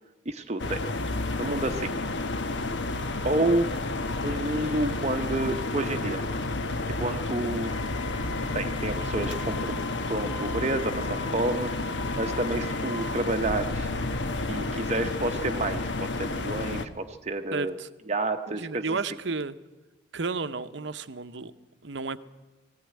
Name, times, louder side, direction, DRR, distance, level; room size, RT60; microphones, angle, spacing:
voice 1, 0.3-0.8 1.4-1.9 3.2-3.7 4.2-6.2 7.0-7.7 8.5-13.9 14.5-17.7 18.1-18.8, right 2 dB, 35° right, 6 dB, 0.8 m, -29 dB
sound 1, 0.6-16.9, left 2 dB, 60° left, 1.0 m, -31 dB
Wind instrument woodwind instrument, 7.6-13.3, left 3 dB, 85° left, 1.2 m, -42 dB
voice 2, 17.5-17.9 18.5-19.6 20.1-21.5 21.8-22.2, right 4 dB, 65° right, 11 dB, 0.8 m, -32 dB
20.0 x 15.5 x 9.5 m, 1.2 s
head